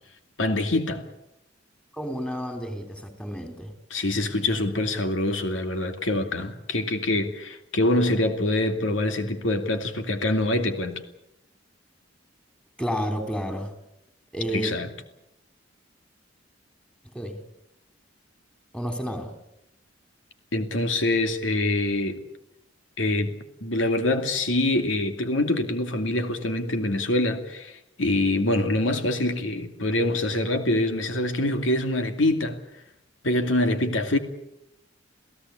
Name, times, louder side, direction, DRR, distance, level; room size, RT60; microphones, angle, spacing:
voice 1, 0.4-1.1 3.9-11.0 14.5-14.9 20.5-22.2 23.0-32.6 33.2-34.2, left 1 dB, 85° left, 2.5 m, -25 dB
voice 2, 1.9-3.7 12.8-13.7 14.3-14.7 17.1-17.4 18.7-19.3, equal, 5° left, 3.5 m, -30 dB
28.5 x 17.0 x 8.4 m
head